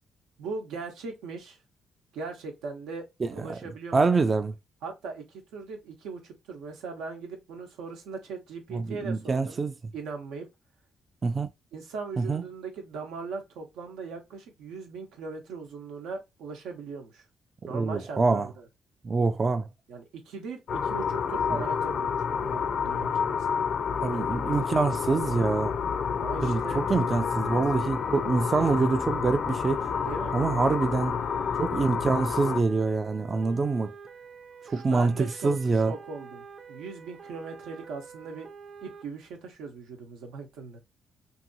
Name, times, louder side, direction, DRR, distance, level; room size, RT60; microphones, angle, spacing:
voice 1, 0.4-1.6 2.1-4.0 4.8-9.6 9.9-10.5 11.7-17.2 17.6-18.6 19.9-23.7 26.2-26.8 29.9-30.4 33.3-33.5 34.6-38.5 38.8-40.8, right 4 dB, 90° right, 0.9 m, -39 dB
voice 2, 3.2-3.6 3.9-4.5 8.7-9.7 11.2-11.5 12.2-12.4 17.7-18.5 19.0-19.7 24.0-25.7 26.4-29.8 30.3-31.2 31.6-33.9 34.7-35.9, right 4 dB, 35° right, 0.3 m, -25 dB
sound 1, 20.7-32.6, left 6 dB, 60° left, 0.4 m, -29 dB
sound 2, 26.5-39.0, right 5 dB, 55° right, 0.9 m, -47 dB
2.8 x 2.7 x 2.6 m
cardioid pair, 90°, 0 cm